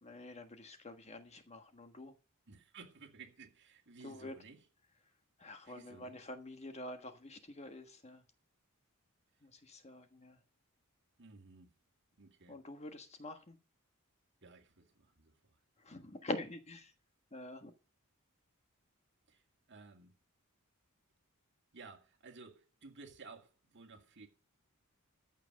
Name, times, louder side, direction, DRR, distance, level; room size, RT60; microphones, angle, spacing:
voice 1, 0.0-2.2 4.0-4.4 5.4-8.2 9.4-10.4 12.5-13.6 15.8-16.9 17.3-17.7, left 2 dB, 30° left, 1.4 m, -46 dB
voice 2, 2.5-4.6 5.4-6.1 11.2-11.7 12.2-12.6 14.4-15.6 19.3-19.4 19.7-20.1 21.7-24.3, right 4 dB, 55° right, 2.1 m, -56 dB
14.5 x 6.1 x 6.4 m
head